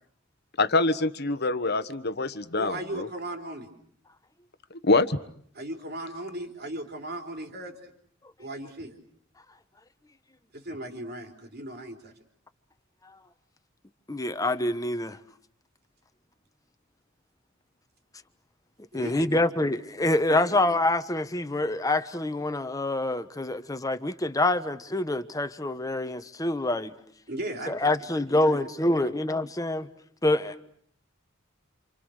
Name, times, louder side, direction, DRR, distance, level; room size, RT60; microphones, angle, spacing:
voice 1, 0.6-3.1 4.8-5.2, left 2 dB, 50° left, 1.3 m, -25 dB
voice 2, 2.6-3.7 5.5-7.9 8.4-8.9 10.5-12.1 18.9-19.5 20.3-20.6 27.3-27.8 28.1-29.1, right 1 dB, 50° right, 3.9 m, -37 dB
voice 3, 14.1-15.2 18.9-26.9 27.7-29.9 30.2-30.6, left 2 dB, 15° left, 1.2 m, -26 dB
28.5 x 28.0 x 6.6 m
head